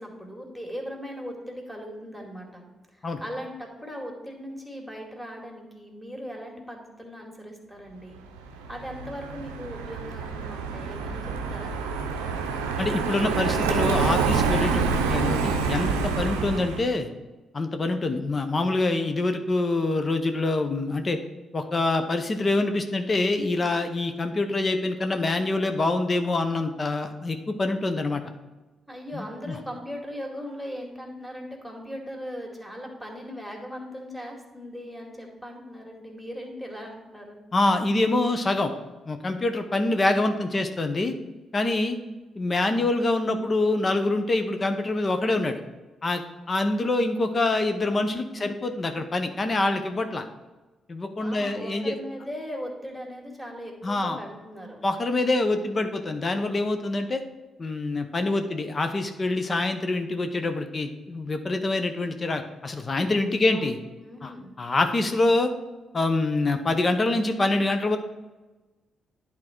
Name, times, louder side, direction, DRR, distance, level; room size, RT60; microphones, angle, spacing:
voice 1, 0.0-2.6 2.9-8.2 8.7-11.8 28.9-37.4 48.2-48.7 51.2-54.8 63.1-63.6 64.0-64.5, equal, 5° left, 1 dB, 2.4 m, -39 dB
Car passing by, 8.4-16.9, right 5 dB, 85° right, 0.6 m, -27 dB
voice 2, 12.8-17.1 17.5-21.2 21.5-28.2 29.1-29.6 37.5-38.7 39.1-41.1 41.5-42.0 42.4-45.6 46.0-46.2 46.5-50.2 50.9-52.0 53.8-54.2 54.8-57.2 57.6-63.8 64.2-64.3 64.6-65.5 65.9-68.0, left 2 dB, 40° left, 7 dB, 0.8 m, -25 dB
10.5 x 3.7 x 4.5 m, 1.1 s
hypercardioid pair, 40°, 0 cm